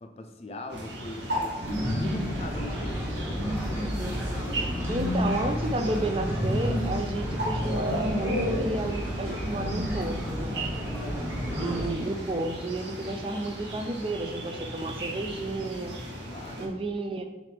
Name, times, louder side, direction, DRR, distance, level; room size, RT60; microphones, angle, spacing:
voice 1, 0.0-4.1 11.5-11.8 16.3-16.8, left 2 dB, 35° left, 4 dB, 0.4 m, -42 dB
sound 1, 0.7-16.7, right 1 dB, 65° right, 1.0 m, -36 dB
sound 2, 1.6-11.9, equal, 15° right, 1.0 m, -30 dB
voice 2, 4.9-10.6 11.6-16.0 16.6-17.2, right 1 dB, 30° right, 6 dB, 0.4 m, -31 dB
6.1 x 2.5 x 3.3 m, 1.1 s
head